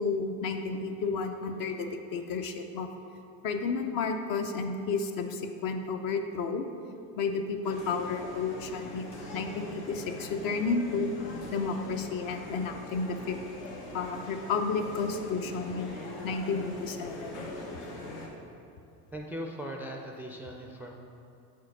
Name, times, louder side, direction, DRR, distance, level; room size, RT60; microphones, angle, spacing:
voice 1, 0.0-2.9 3.4-6.7 7.2-11.1 11.5-13.4 13.9-16.0 16.2-17.4, left 4 dB, 50° left, 5 dB, 0.7 m, -32 dB
sound 1, 7.6-18.3, left 2 dB, 85° left, 1.4 m, -42 dB
voice 2, 19.1-20.9, equal, 5° right, 0 dB, 0.3 m, -39 dB
4.7 x 4.5 x 5.9 m, 2.7 s
supercardioid pair, 95°, 44 cm